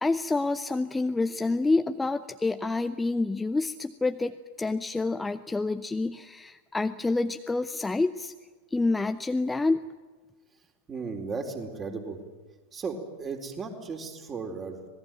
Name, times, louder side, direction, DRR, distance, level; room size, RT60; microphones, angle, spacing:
voice 1, 0.0-8.3 8.7-9.9, left 3 dB, 10° left, 10 dB, 0.7 m, -28 dB
voice 2, 10.9-12.2 12.7-14.9, right 4 dB, 20° right, 4 dB, 4.0 m, -35 dB
26.5 x 19.5 x 9.1 m, 1.4 s
figure-of-eight pair, 90°, 0 cm